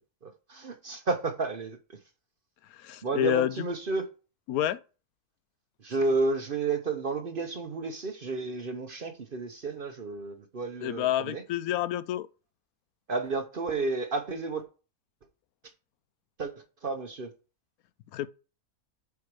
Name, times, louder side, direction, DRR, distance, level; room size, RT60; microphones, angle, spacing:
voice 1, 0.2-1.8 3.0-4.1 5.8-11.4 13.1-14.6 16.4-16.5 16.8-17.3, right 3 dB, 45° right, 0.8 m, -31 dB
voice 2, 2.7-3.7 4.5-4.8 10.8-12.3 18.1-18.3, left 11 dB, 75° left, 1.0 m, -28 dB
8.2 x 4.7 x 4.7 m
omnidirectional pair, 1.6 m